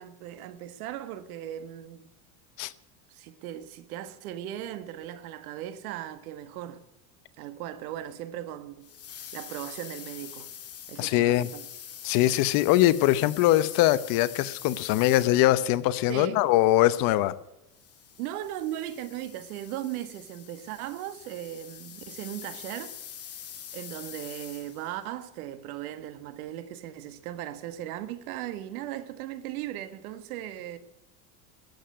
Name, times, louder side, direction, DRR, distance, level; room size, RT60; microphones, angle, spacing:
voice 1, 0.0-2.1 3.1-6.8 7.4-8.9 9.3-10.5 10.9-11.7 16.1-16.4 18.2-22.9 23.7-30.8, right 12 dB, 75° right, 1.6 m, -37 dB
sound 1, 8.8-15.8 17.7-25.0, left 9 dB, 30° left, 2.2 m, -45 dB
voice 2, 11.0-11.5 12.0-17.3, left 15 dB, 50° left, 0.9 m, -22 dB
13.5 x 8.0 x 9.6 m
supercardioid pair, 120°, 44 cm